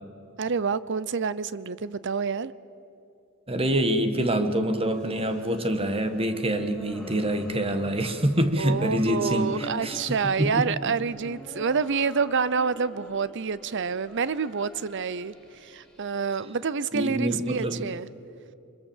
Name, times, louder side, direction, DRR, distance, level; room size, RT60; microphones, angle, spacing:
voice 1, 0.4-2.5 8.6-15.3 15.6-18.1, right 5 dB, 60° right, 18 dB, 0.7 m, -28 dB
voice 2, 3.5-10.9 16.9-17.8, right 1 dB, 25° right, 8 dB, 1.6 m, -26 dB
sound 1, 4.9-16.1, equal, 5° left, 4.1 m, -45 dB
25.5 x 21.5 x 7.3 m, 2.9 s
head